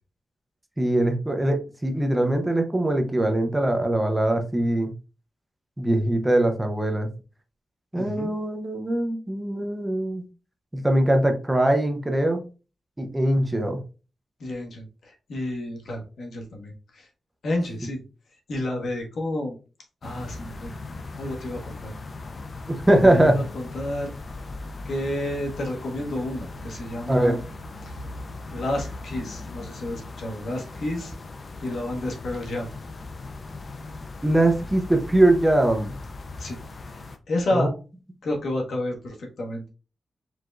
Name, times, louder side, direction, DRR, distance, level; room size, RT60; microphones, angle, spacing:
voice 1, 0.8-4.9 5.8-7.1 7.9-10.2 10.7-12.4 13.0-13.8 22.7-23.4 27.1-27.4 34.2-35.9 37.5-37.7, right 1 dB, 10° right, 5 dB, 0.7 m, -22 dB
voice 2, 7.9-8.3 14.4-17.1 17.4-18.0 18.5-19.6 20.0-20.8 21.2-21.9 22.2-22.3 23.0-24.1 24.8-27.4 27.8-28.0 28.5-31.1 31.6-32.7 36.4-37.7 38.2-39.7, left 1 dB, 70° left, 1 dB, 1.4 m, -30 dB
sound 1, 20.0-37.2, left 3 dB, 40° left, 0.5 m, -39 dB
4.7 x 3.6 x 2.5 m, 0.33 s
wide cardioid pair, 125°, 0 cm